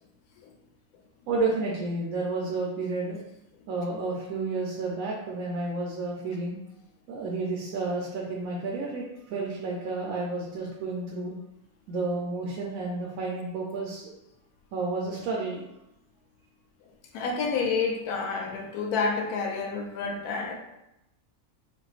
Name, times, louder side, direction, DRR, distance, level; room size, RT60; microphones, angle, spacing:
voice 1, 1.3-3.2 3.7-6.6 7.1-11.3 11.9-14.1 14.7-15.6, right 3 dB, 70° right, -2 dB, 1.0 m, -31 dB
voice 2, 17.1-20.5, left 4 dB, 85° left, 1 dB, 1.1 m, -29 dB
4.2 x 2.6 x 2.4 m, 0.89 s
omnidirectional pair, 1.6 m